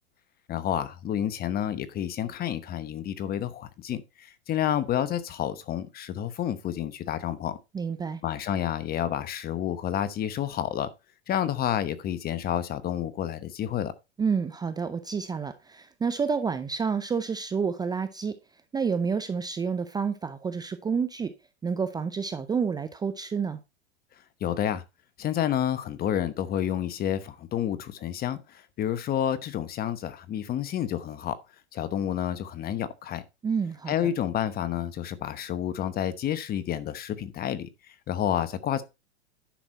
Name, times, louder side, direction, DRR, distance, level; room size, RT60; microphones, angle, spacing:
voice 1, 0.5-7.6 8.2-10.9 11.3-13.9 24.4-24.8 25.2-31.4 31.7-33.2 33.9-37.7 38.1-38.8, left 10 dB, 30° left, 1.0 m, -29 dB
voice 2, 7.7-8.2 14.2-18.4 18.7-21.3 21.6-23.6 33.4-33.9, right 5 dB, 10° right, 0.6 m, -29 dB
10.5 x 6.1 x 4.1 m
hypercardioid pair, 125°, 33 cm